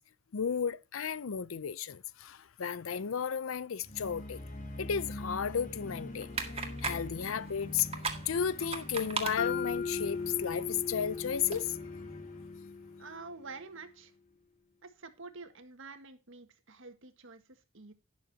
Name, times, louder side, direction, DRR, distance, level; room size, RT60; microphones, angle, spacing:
voice 1, 0.3-4.4 4.8-7.9 8.3-11.8, left 7 dB, 75° left, 0.5 m, -34 dB
sound 1, 3.8-13.9, left 1 dB, 40° left, 1.9 m, -45 dB
sound 2, 6.1-11.6, right 4 dB, 30° right, 1.9 m, -41 dB
Mallet percussion, 9.4-13.4, left 5 dB, 55° left, 0.9 m, -38 dB
voice 2, 13.0-14.1 14.8-17.9, right 4 dB, 65° right, 1.7 m, -48 dB
12.0 x 10.5 x 2.8 m
head